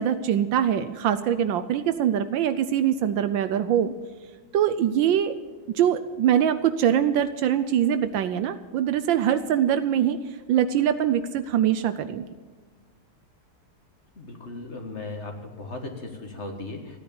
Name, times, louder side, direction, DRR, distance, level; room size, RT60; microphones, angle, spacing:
voice 1, 0.0-3.9 4.5-5.3 5.7-10.2 10.5-12.2, right 10 dB, 70° right, 10 dB, 1.3 m, -23 dB
voice 2, 14.2-17.0, left 2 dB, 35° left, 3 dB, 1.6 m, -37 dB
15.5 x 9.8 x 7.0 m, 1.4 s
omnidirectional pair, 2.3 m